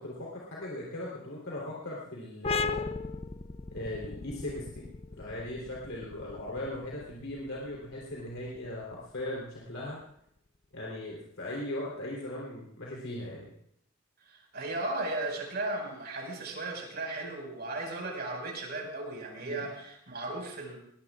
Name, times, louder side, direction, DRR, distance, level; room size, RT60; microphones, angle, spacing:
voice 1, 0.0-2.9 3.7-4.9 5.2-10.0 10.7-13.5 19.4-19.6, left 1 dB, 80° left, -5 dB, 3.6 m, -38 dB
sound 1, 2.4-9.7, left 4 dB, 30° left, 0.5 m, -38 dB
voice 2, 14.2-20.8, right 2 dB, 55° right, 0 dB, 5.4 m, -36 dB
22.0 x 18.5 x 2.5 m, 0.72 s
head